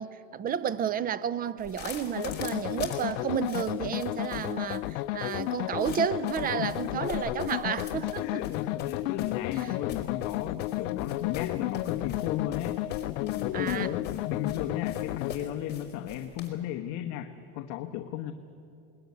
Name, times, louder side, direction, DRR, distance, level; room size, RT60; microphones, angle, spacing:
voice 1, 0.0-8.4 9.6-9.7 13.5-14.0, right 8 dB, 25° right, 0.6 m, -31 dB
sound 1, 1.6-16.5, left 7 dB, 25° left, 3.5 m, -44 dB
sound 2, 2.2-15.3, left 16 dB, 75° left, 0.7 m, -33 dB
voice 2, 6.6-7.1 8.2-12.8 13.2-18.3, left 12 dB, 50° left, 1.1 m, -35 dB
21.0 x 20.0 x 9.6 m
supercardioid pair, 140°, 39 cm